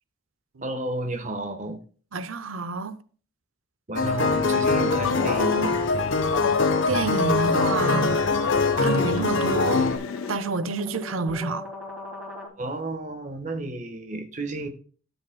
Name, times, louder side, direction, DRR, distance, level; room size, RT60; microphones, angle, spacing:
voice 1, 0.6-1.8 3.9-5.8 8.8-8.9 12.6-14.7, right 2 dB, 35° right, 1.2 m, -32 dB
voice 2, 2.1-3.0 6.9-8.2 8.8-9.9 10.3-11.7, right 3 dB, 90° right, 0.6 m, -28 dB
sound 1, 4.0-10.0, left 3 dB, 70° left, 0.9 m, -23 dB
Train, 4.6-10.4, left 7 dB, 85° left, 0.4 m, -32 dB
sound 2, 6.4-12.5, left 2 dB, 5° right, 1.9 m, -40 dB
12.5 x 7.1 x 2.2 m
head